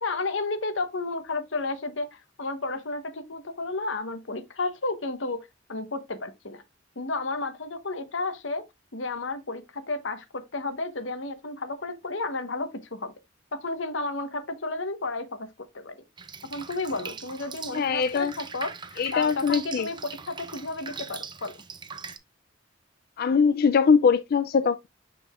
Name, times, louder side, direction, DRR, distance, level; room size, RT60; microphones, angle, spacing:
voice 1, 0.0-6.6 7.0-8.6 8.9-13.1 13.5-15.5 15.7-16.0 16.5-21.5, left 3 dB, 80° left, 1.2 m, -32 dB
Drip, 16.2-22.2, right 5 dB, 25° right, 0.7 m, -41 dB
voice 2, 17.7-18.3 19.0-19.9 23.2-24.9, left 6 dB, 50° left, 0.4 m, -22 dB
6.8 x 6.0 x 2.4 m
head